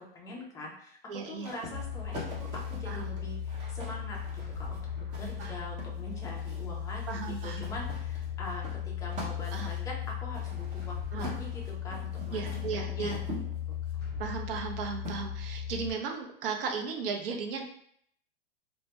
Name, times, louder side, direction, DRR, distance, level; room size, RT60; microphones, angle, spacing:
voice 1, 0.0-7.1 7.4-12.5 12.8-13.8, left 1 dB, 10° left, -2 dB, 0.3 m, -43 dB
voice 2, 1.1-1.5 2.9-3.1 5.2-5.6 7.1-7.7 9.5-9.7 11.1-11.4 12.3-13.2 14.2-17.6, right 5 dB, 70° right, 3 dB, 0.6 m, -36 dB
sound 1, 1.4-6.8 7.6-14.0 15.0-15.2, equal, 25° right, 0.7 m, -44 dB
sound 2, 1.7-15.9, left 9 dB, 35° left, 0.7 m, -37 dB
2.1 x 2.1 x 2.8 m, 0.66 s
hypercardioid pair, 135°, 29 cm